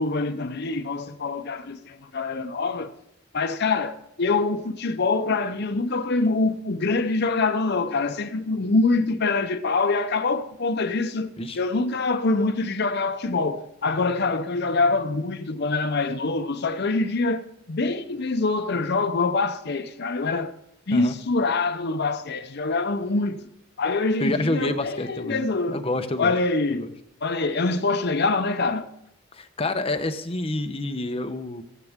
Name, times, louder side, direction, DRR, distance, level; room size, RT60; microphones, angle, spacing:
voice 1, 0.0-2.9 3.3-11.3 11.5-20.5 20.9-23.5 23.8-25.8 26.2-26.9 27.2-28.9, left 3 dB, 60° left, 0.8 m, -25 dB
voice 2, 24.2-26.3 26.7-26.9 29.3-31.6, left 2 dB, 30° left, 1.0 m, -28 dB
15.0 x 15.0 x 3.6 m
head